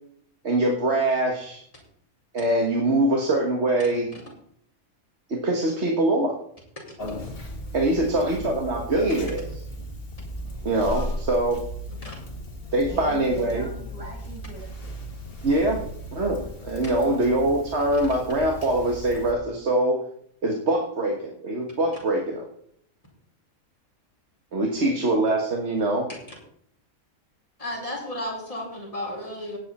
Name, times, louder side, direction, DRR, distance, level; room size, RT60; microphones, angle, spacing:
voice 1, 0.4-1.6 2.3-4.1 5.3-6.3 7.7-9.4 10.6-11.6 12.7-13.7 15.4-15.8 16.1-20.0 20.4-22.4 24.5-26.1, right 1 dB, 50° right, 1 dB, 1.7 m, -23 dB
Conversation, 7.0-19.3, equal, 40° left, 2.0 m, -36 dB
voice 2, 12.9-14.9, right 3 dB, 25° right, -3 dB, 6.0 m, -41 dB
voice 3, 27.6-29.6, left 1 dB, 25° left, -4 dB, 5.0 m, -33 dB
17.5 x 8.5 x 4.2 m, 0.68 s
omnidirectional pair, 1.5 m